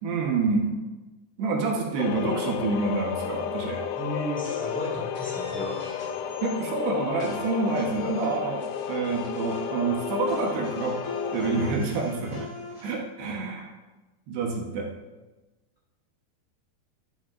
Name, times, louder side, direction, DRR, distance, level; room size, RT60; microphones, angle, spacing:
voice 1, 0.0-0.8 1.4-3.8 6.4-8.6 8.9-11.0 11.3-12.5 12.8-13.7 14.3-14.9, right 4 dB, 90° right, 0 dB, 3.3 m, -27 dB
sound 1, 2.0-11.8, left 8 dB, 85° left, 2.6 m, -32 dB
voice 2, 3.9-5.8, equal, 10° left, -6 dB, 0.6 m, -34 dB
sound 2, 4.4-6.8 7.2-12.9, left 2 dB, 30° left, 3.9 m, -41 dB
12.0 x 10.5 x 2.6 m, 1.1 s
omnidirectional pair, 4.5 m